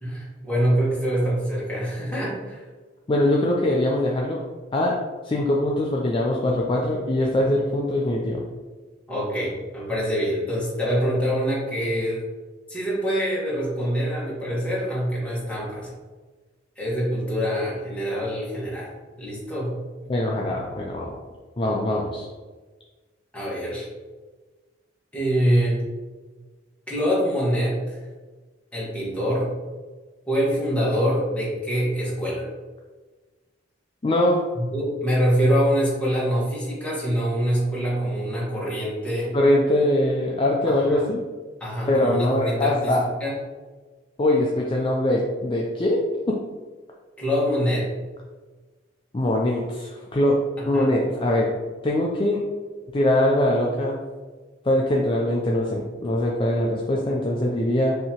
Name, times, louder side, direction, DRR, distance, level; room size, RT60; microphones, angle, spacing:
voice 1, 0.0-2.6 9.1-12.2 12.7-15.9 16.8-18.9 19.2-19.8 23.3-23.9 25.1-25.8 26.9-28.0 28.7-29.5 30.3-32.5 34.5-39.4 40.7-41.0 41.6-43.3 47.2-47.9 50.6-50.9, equal, 5° left, -7 dB, 1.4 m, -25 dB
voice 2, 3.1-4.4 4.7-5.0 5.2-8.4 20.1-21.2 21.6-22.3 34.0-34.4 39.3-41.2 41.9-43.0 44.2-46.0 46.3-46.4 49.1-50.4 50.7-51.5 51.8-52.4 52.9-54.0 54.6-57.9, left 1 dB, 30° left, -2 dB, 0.4 m, -22 dB
5.6 x 2.8 x 2.9 m, 1.3 s
head